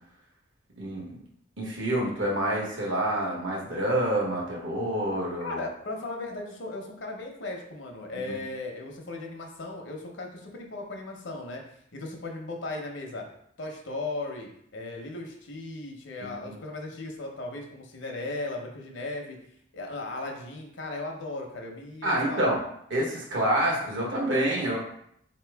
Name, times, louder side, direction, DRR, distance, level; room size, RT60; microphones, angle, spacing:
voice 1, 0.8-1.2 1.6-5.6 8.3-8.4 16.2-16.5 22.0-22.6 22.9-24.8, right 1 dB, 70° right, -2 dB, 1.2 m, -27 dB
voice 2, 5.4-11.6 11.9-13.2 13.6-19.4 19.7-22.5, left 2 dB, 65° left, 2 dB, 0.8 m, -37 dB
4.0 x 2.9 x 3.4 m, 0.70 s
head